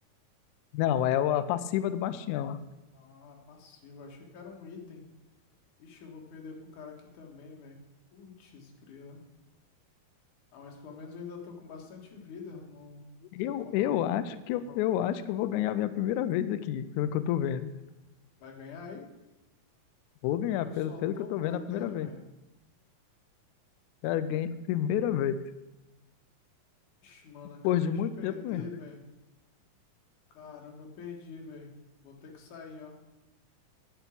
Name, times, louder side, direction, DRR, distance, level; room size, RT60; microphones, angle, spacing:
voice 1, 0.7-2.6 13.3-17.7 20.2-22.1 24.0-25.4 27.6-28.6, left 11 dB, 90° left, 12 dB, 1.7 m, -29 dB
voice 2, 2.9-5.1 5.8-7.8 8.1-9.2 10.5-13.1 13.4-14.0 18.4-19.1 20.5-22.2 27.0-29.0 30.3-31.7 32.0-33.0, left 5 dB, 65° left, 1 dB, 2.9 m, -46 dB
10.0 x 5.8 x 8.5 m, 1.0 s
omnidirectional pair, 4.0 m